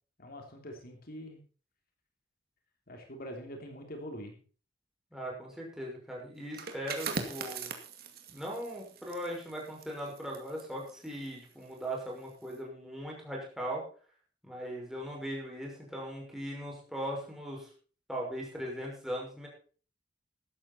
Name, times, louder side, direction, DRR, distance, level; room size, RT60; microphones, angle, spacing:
voice 1, 0.2-1.4 2.9-4.3, equal, 55° left, 3 dB, 3.1 m, -44 dB
voice 2, 5.1-7.7 8.3-13.8 14.4-17.7 18.1-19.5, equal, 5° right, -3 dB, 6.2 m, -39 dB
sound 1, 6.4-11.9 12.3-12.6, right 4 dB, 55° right, 2.4 m, -41 dB
14.5 x 12.0 x 4.4 m, 0.40 s
head